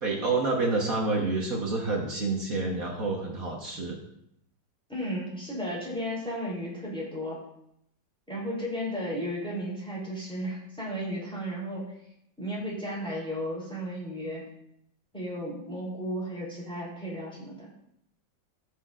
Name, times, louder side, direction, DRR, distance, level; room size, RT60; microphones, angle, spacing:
voice 1, 0.0-4.0, right 3 dB, 50° right, -1 dB, 1.6 m, -28 dB
voice 2, 4.9-7.4 8.3-11.8 12.4-14.4 15.1-17.7, equal, 5° left, -5 dB, 3.3 m, -34 dB
17.5 x 6.2 x 2.5 m, 0.78 s
omnidirectional pair, 2.0 m